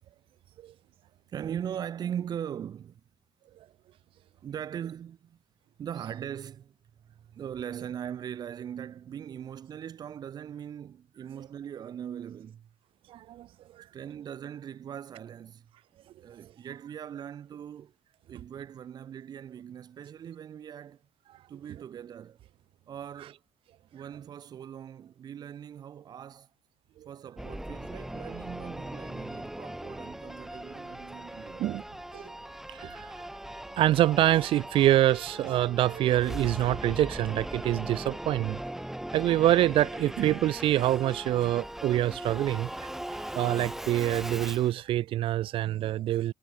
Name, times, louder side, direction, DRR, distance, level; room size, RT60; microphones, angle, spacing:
voice 1, 1.3-3.0 4.4-5.4 5.8-6.8 7.1-12.7 13.9-15.7 16.2-17.9 18.3-21.0 21.5-22.4 22.9-23.4 23.9-26.5 27.1-31.7, right 9 dB, 40° right, 5.7 m, -40 dB
voice 2, 13.1-13.5 13.8-13.9 31.6-31.8 32.1-32.3 32.7-33.2 33.8-38.6 39.1-42.9 43.3-46.3, right 13 dB, 60° right, 1.5 m, -26 dB
Singing / Musical instrument, 27.4-44.7, right 1 dB, 5° right, 5.9 m, -39 dB
cardioid pair, 165°, 10 cm